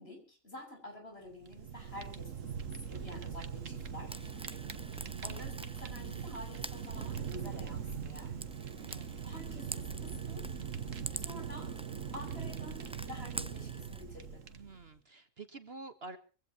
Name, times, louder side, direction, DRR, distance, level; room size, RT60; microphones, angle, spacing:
voice 1, 0.0-4.5 5.2-8.5 9.2-10.5 11.2-11.7 12.1-14.4, left 1 dB, 45° left, 2 dB, 7.1 m, -49 dB
Fire, 1.3-14.9, right 7 dB, 70° right, 1.6 m, -41 dB
Frying (food), 4.1-14.0, right 1 dB, 5° right, 0.4 m, -47 dB
voice 2, 8.8-9.2 14.5-16.2, right 3 dB, 50° right, 9 dB, 1.4 m, -49 dB
23.5 x 16.0 x 2.9 m, 0.37 s
omnidirectional pair, 1.4 m